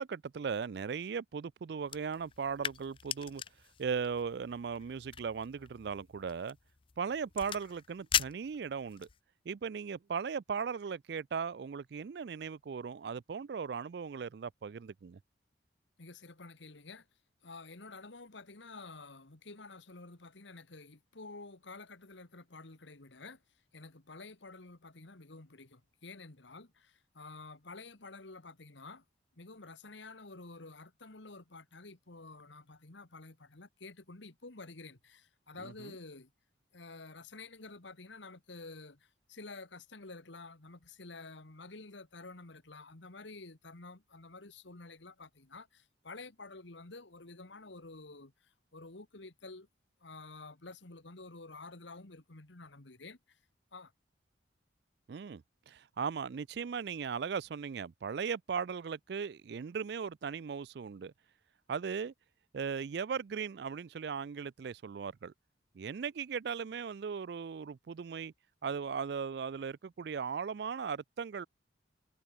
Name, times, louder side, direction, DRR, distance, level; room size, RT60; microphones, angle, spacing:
voice 1, 0.0-3.4 3.8-6.6 7.0-9.1 9.5-15.2 35.6-35.9 55.1-61.1 61.7-62.1 62.5-65.3 65.8-68.3 68.6-71.5, right 6 dB, 55° right, 0.4 m, -38 dB
sound 1, 1.8-9.2, left 9 dB, 25° left, 0.4 m, -40 dB
voice 2, 16.0-17.1 17.4-23.4 23.7-29.0 29.4-36.3 36.7-48.3 48.7-49.7 50.0-53.4 53.7-53.9, left 3 dB, 70° left, 1.8 m, -50 dB
head